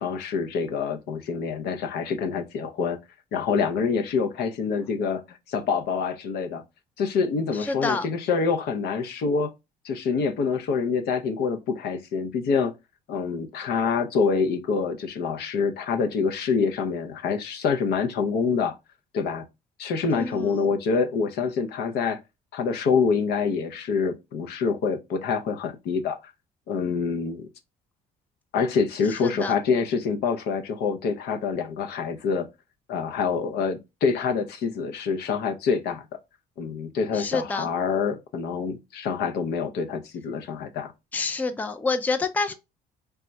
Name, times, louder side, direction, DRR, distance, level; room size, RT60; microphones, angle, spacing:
voice 1, 0.0-3.0 3.3-6.6 7.0-9.5 9.8-12.7 13.1-18.8 19.1-19.4 19.8-22.2 22.5-26.2 26.7-27.5 28.5-32.5 32.9-36.1 36.6-40.9, left 5 dB, 70° left, 0.6 m, -26 dB
voice 2, 7.6-8.1 20.1-20.7 29.2-29.5 37.1-37.7 41.1-42.5, left 3 dB, 10° left, 0.4 m, -28 dB
3.4 x 2.2 x 3.9 m
cardioid pair, 110°, 17 cm